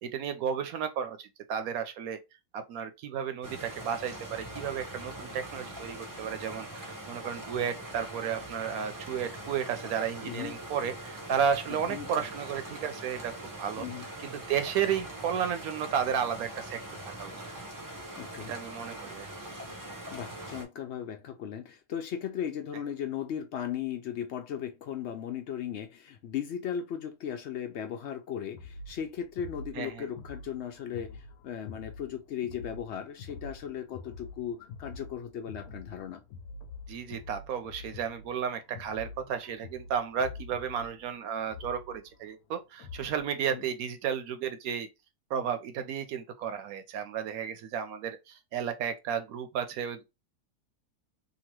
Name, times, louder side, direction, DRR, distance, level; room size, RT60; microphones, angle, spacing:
voice 1, 0.0-2.2 2.5-13.3 13.6-13.9 14.2-16.8 17.2-17.3 18.5-19.3 29.7-30.1 36.9-44.9 45.3-50.0, right 8 dB, 80° right, 1.0 m, -33 dB
sound 1, 3.4-20.7, right 1 dB, 30° right, 0.4 m, -42 dB
voice 2, 10.2-10.6 11.7-12.2 13.8-14.1 18.2-18.5 20.1-36.2 43.5-43.6, left 9 dB, 70° left, 0.7 m, -37 dB
sound 2, 28.5-43.3, left 4 dB, 85° left, 1.1 m, -46 dB
2.9 x 2.5 x 2.9 m
omnidirectional pair, 1.5 m